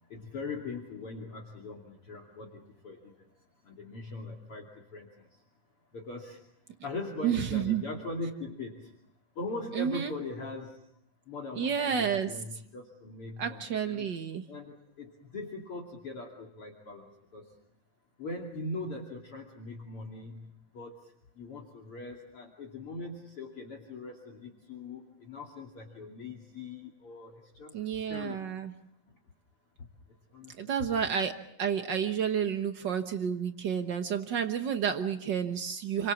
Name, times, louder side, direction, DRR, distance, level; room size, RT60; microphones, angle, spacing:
voice 1, 0.1-3.1 3.6-5.1 5.9-6.4 6.8-8.9 9.4-10.8 11.3-14.1 14.5-17.5 18.2-20.9 21.4-27.7 28.1-28.6 30.3-30.5 30.8-31.0, left 3 dB, 45° left, -1 dB, 3.3 m, -41 dB
voice 2, 7.2-7.8 9.7-10.1 11.5-12.3 13.4-14.4 27.7-28.7 30.6-36.1, right 8 dB, 80° right, 6 dB, 1.0 m, -30 dB
29.5 x 24.5 x 7.3 m, 0.76 s
omnidirectional pair, 3.9 m